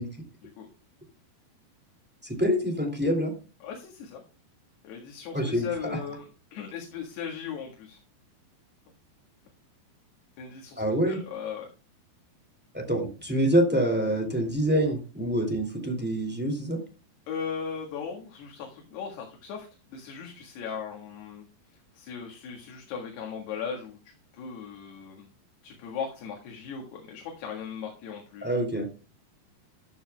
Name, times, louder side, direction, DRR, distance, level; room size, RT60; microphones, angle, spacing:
voice 1, 2.2-3.3 5.3-6.0 10.8-11.2 12.7-16.8 28.4-28.9, equal, 5° right, 3 dB, 1.4 m, -26 dB
voice 2, 3.6-4.2 4.8-8.0 10.4-11.7 17.3-21.5 21.9-25.3 25.6-28.6, left 6 dB, 75° left, 0 dB, 3.8 m, -38 dB
14.0 x 11.0 x 2.3 m, 0.34 s
omnidirectional pair, 4.8 m